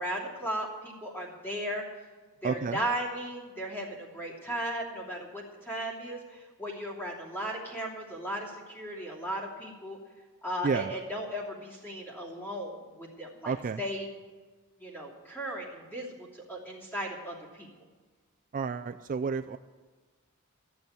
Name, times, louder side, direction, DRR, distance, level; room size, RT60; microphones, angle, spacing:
voice 1, 0.0-1.8 2.4-10.0 10.4-14.1 14.8-17.7, right 1 dB, 10° left, -4 dB, 2.9 m, -36 dB
voice 2, 2.4-2.8 10.6-10.9 13.5-13.8 18.5-19.6, right 5 dB, 40° right, 9 dB, 0.3 m, -31 dB
14.0 x 7.0 x 9.3 m, 1.3 s
head